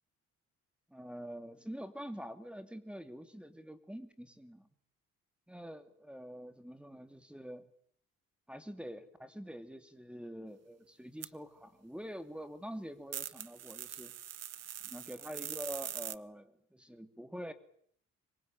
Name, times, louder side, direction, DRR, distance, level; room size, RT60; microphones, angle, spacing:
voice 1, 0.9-4.7 5.5-7.6 8.5-14.1 14.8-17.5, equal, 5° right, 9 dB, 2.8 m, -46 dB
sound 1, 11.2-11.3 13.1-16.2, right 10 dB, 55° right, 1.3 m, -42 dB
25.0 x 21.5 x 9.1 m, 0.63 s
cardioid pair, 90°, 30 cm